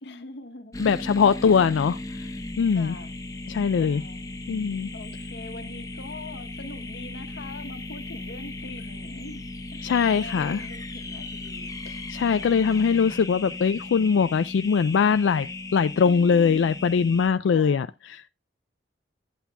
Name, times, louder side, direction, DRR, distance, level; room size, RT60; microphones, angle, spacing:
voice 1, 0.0-0.8 2.7-3.1 3.8-4.4 4.9-11.7 12.3-12.9 16.0-16.7 17.4-17.9, left 2 dB, 65° left, 1.0 m, -43 dB
sound 1, 0.7-17.3, left 2 dB, 20° left, 0.7 m, -37 dB
voice 2, 0.8-2.3 2.6-3.0 3.5-4.0 4.5-4.9 9.8-10.6 11.9-18.3, left 6 dB, 90° left, 0.3 m, -22 dB
11.0 x 8.1 x 2.3 m
head